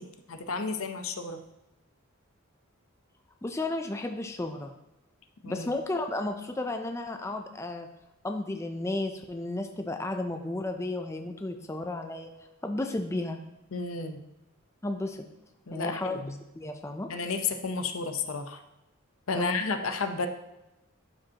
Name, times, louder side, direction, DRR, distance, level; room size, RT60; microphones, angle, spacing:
voice 1, 0.0-1.4 5.4-5.7 13.7-14.2 15.7-16.3 17.1-18.6 19.3-20.3, left 4 dB, 75° left, 7 dB, 0.7 m, -32 dB
voice 2, 3.4-4.7 5.4-7.9 8.2-12.3 12.6-13.4 14.8-15.3 15.7-16.2 16.6-17.1 19.3-19.6, left 2 dB, 15° left, 5 dB, 0.4 m, -33 dB
11.5 x 5.1 x 2.8 m, 0.93 s
head